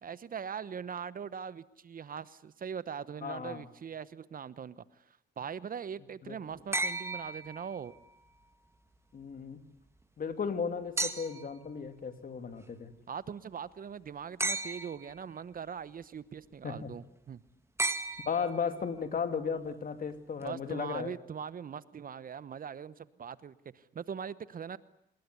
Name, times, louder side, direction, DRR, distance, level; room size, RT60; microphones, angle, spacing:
voice 1, 0.0-8.0 13.1-17.4 20.4-24.8, right 7 dB, 45° right, 17 dB, 1.0 m, -41 dB
voice 2, 3.2-3.6 6.2-6.4 9.1-9.6 10.2-12.9 16.6-16.9 18.3-21.1, left 6 dB, 45° left, 9 dB, 2.9 m, -35 dB
sound 1, 6.7-8.1 11.0-11.6 14.4-15.2 17.8-18.8 20.4-20.5, right 2 dB, 15° right, 1.9 m, -34 dB
26.0 x 21.0 x 9.8 m, 0.73 s
cardioid pair, 90°, 20 cm